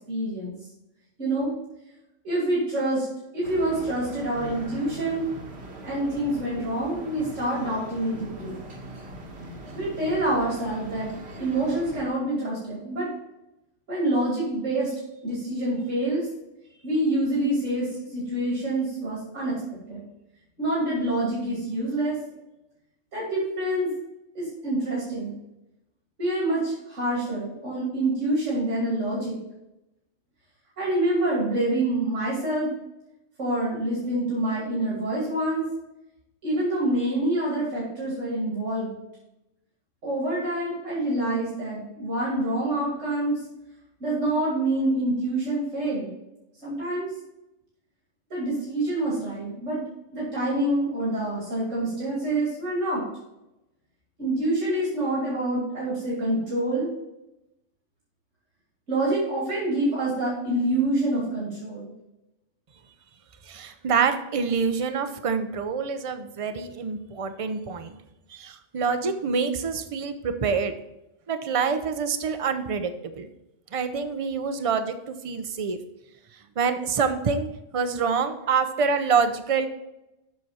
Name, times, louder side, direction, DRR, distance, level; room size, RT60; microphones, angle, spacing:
voice 1, 0.1-0.5 1.2-1.5 2.2-3.1 3.3-5.3 5.8-8.6 9.7-11.1 11.4-13.1 13.9-14.9 15.2-16.3 16.8-19.5 19.9-20.0 20.6-22.2 23.1-23.9 24.3-25.3 26.2-29.4 30.8-32.7 33.4-35.6 36.4-38.9 40.0-43.4 44.0-46.1 46.6-47.1 48.3-49.8 50.1-53.0 54.2-56.9 58.9-61.9, right 1 dB, 80° right, -6 dB, 3.0 m, -26 dB
sound 1, 3.4-12.1, right 1 dB, 60° right, 1.6 m, -41 dB
voice 2, 63.5-68.0 68.3-70.7 71.3-73.3 73.7-75.8 76.6-77.5 77.7-79.7, right 5 dB, 35° right, 9 dB, 0.6 m, -26 dB
7.8 x 6.0 x 4.2 m, 0.92 s
omnidirectional pair, 1.3 m